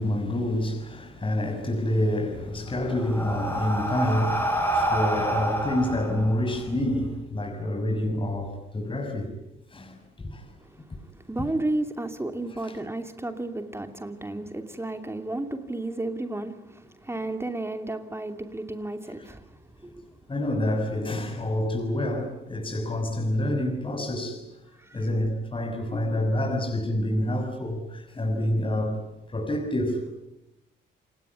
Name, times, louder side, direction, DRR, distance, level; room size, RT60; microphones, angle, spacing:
voice 1, 0.0-9.3 9.7-10.5 12.6-12.8 20.3-24.4 24.9-29.0 29.3-30.1, left 1 dB, 25° left, 6.2 m, -27 dB
Breathing, 2.3-7.1, right 1 dB, 10° left, 8.0 m, -28 dB
voice 2, 10.6-20.1 24.8-25.0, right 2 dB, 10° right, 2.7 m, -33 dB
29.0 x 19.0 x 9.6 m
cardioid pair, 90°, 20 cm